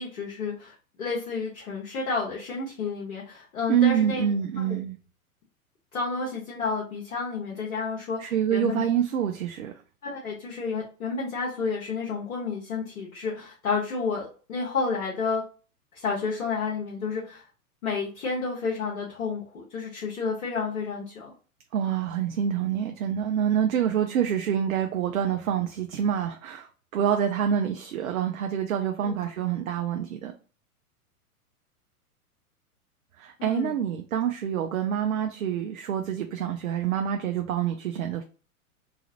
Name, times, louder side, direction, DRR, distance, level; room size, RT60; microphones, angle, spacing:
voice 1, 0.0-4.2 4.6-4.8 5.9-8.8 10.0-15.4 15.9-17.4 17.8-21.3 29.0-29.1 33.4-33.7, left 4 dB, 65° left, 1.1 m, -31 dB
voice 2, 3.7-5.0 8.2-9.7 21.7-26.7 26.9-30.3 33.2-38.2, right 9 dB, 60° right, 0.5 m, -26 dB
3.0 x 2.4 x 2.8 m
figure-of-eight pair, 105°, 45 cm